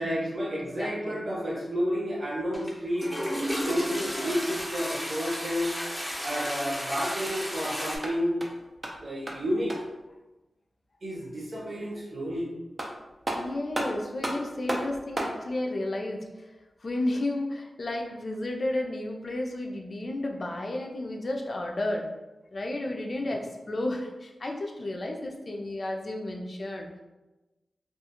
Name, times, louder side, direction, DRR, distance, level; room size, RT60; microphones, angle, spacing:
voice 1, 0.0-3.1 3.6-5.7 6.2-8.3 9.0-9.7 11.0-12.5, equal, 50° right, -4 dB, 0.8 m, -30 dB
voice 2, 0.6-1.2 13.3-16.5 16.8-22.1 22.5-23.4 23.7-26.9, left 1 dB, 50° left, 2 dB, 0.4 m, -32 dB
Toilet flush, 2.5-2.7 3.0-8.0, equal, 5° left, 0.6 m, -33 dB
sound 1, 3.5-4.8 7.8-10.0 12.3-12.4 12.8-15.4, right 1 dB, 35° right, 0.5 m, -35 dB
2.3 x 2.3 x 2.9 m, 1.1 s
cardioid pair, 70°, 0 cm